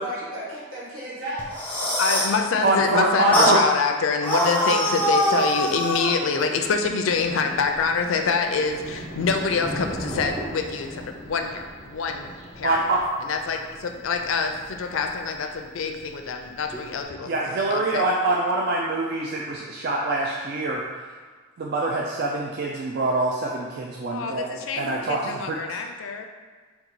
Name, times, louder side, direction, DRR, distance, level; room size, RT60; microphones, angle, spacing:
voice 1, 0.0-2.1, right 1 dB, 80° right, -7 dB, 1.4 m, -35 dB
sound 1, 1.4-2.4 3.3-3.6 4.2-6.2, equal, 10° left, 0.6 m, -22 dB
voice 2, 2.0-12.8 13.2-17.4 17.7-18.1 24.1-26.3, left 5 dB, 75° left, 5 dB, 0.4 m, -26 dB
voice 3, 2.6-3.6 12.6-13.0 17.3-20.8 21.6-25.6, right 2 dB, 50° right, -2 dB, 0.4 m, -24 dB
Thunder, 7.1-17.0, equal, 35° right, 0.8 m, -39 dB
3.8 x 2.3 x 4.4 m, 1.4 s
head